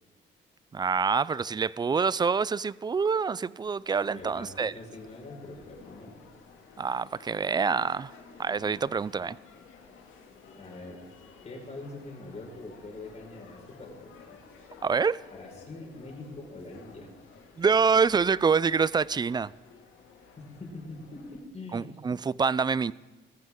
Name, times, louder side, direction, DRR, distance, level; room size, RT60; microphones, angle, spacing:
voice 1, 0.7-4.7 6.8-8.1 8.4-9.4 14.8-15.2 17.6-19.5 21.7-22.9, right 5 dB, 20° right, 0.4 m, -26 dB
sound 1, 3.6-21.4, left 5 dB, 80° left, 2.5 m, -53 dB
voice 2, 4.1-6.2 10.6-11.0 11.4-14.4 15.3-17.1 20.4-22.0, left 2 dB, 35° left, 5.3 m, -43 dB
20.5 x 14.0 x 3.7 m
cardioid pair, 90°, 20 cm